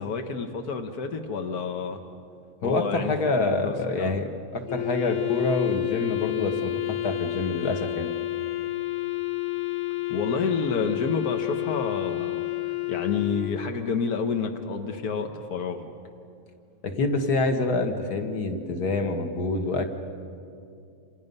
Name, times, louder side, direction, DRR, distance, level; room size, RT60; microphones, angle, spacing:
voice 1, 0.0-2.0 2.6-4.2 10.1-15.9, left 5 dB, 70° left, 4 dB, 0.8 m, -29 dB
voice 2, 2.6-6.7 7.0-8.1 16.8-19.8, left 3 dB, 45° left, 6 dB, 1.4 m, -26 dB
Wind instrument woodwind instrument, 4.7-13.9, left 17 dB, 90° left, 2.8 m, -30 dB
28.5 x 27.0 x 5.5 m, 2.5 s
omnidirectional pair, 3.5 m